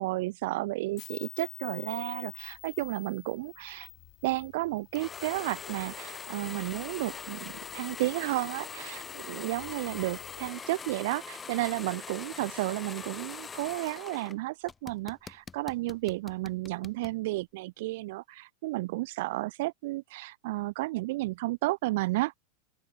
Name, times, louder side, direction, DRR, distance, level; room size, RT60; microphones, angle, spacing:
voice 1, 0.0-3.9 4.2-22.4, right 20 dB, 65° right, 0.5 m, -32 dB
sound 1, 0.9-10.5, left 23 dB, 45° left, 3.0 m, -48 dB
sound 2, 4.9-14.3 14.7-17.2, left 5 dB, 15° left, 1.0 m, -43 dB
open air
supercardioid pair, 145°, 0 cm